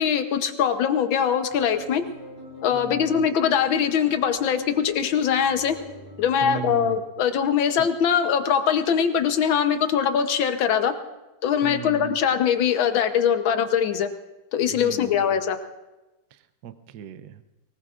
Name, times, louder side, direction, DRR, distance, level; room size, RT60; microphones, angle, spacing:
voice 1, 0.0-2.0 2.6-5.8 6.2-10.9 11.4-14.1 14.5-15.6, left 8 dB, 80° left, 8 dB, 1.7 m, -22 dB
sound 1, 1.5-7.0, left 2 dB, 10° right, 5.8 m, -43 dB
voice 2, 2.7-3.3 6.4-7.0 7.8-7.9 11.6-12.2 14.7-15.4 16.3-17.4, right 8 dB, 65° right, 11 dB, 1.1 m, -37 dB
23.0 x 19.5 x 2.5 m, 1.1 s
omnidirectional pair, 2.2 m